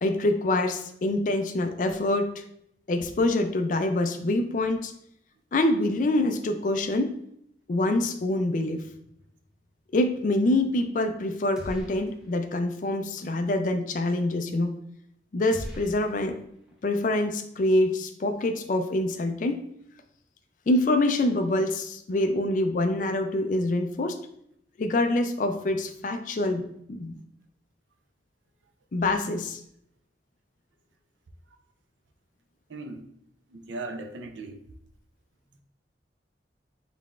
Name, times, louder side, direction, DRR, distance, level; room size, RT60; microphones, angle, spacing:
voice 1, 0.0-2.4 2.9-4.9 5.5-7.1 7.7-8.8 9.9-14.7 15.3-16.4 16.8-19.6 20.7-24.2 24.8-26.6 26.9-27.2 28.9-29.6, left 2 dB, 45° left, 7 dB, 0.4 m, -25 dB
sound 1, 11.6-12.4 12.7-12.8 15.5-16.8, equal, 5° right, 0.7 m, -41 dB
voice 2, 32.7-33.1 33.5-34.6, right 2 dB, 85° right, 6 dB, 0.5 m, -37 dB
4.1 x 3.9 x 2.4 m, 0.74 s
head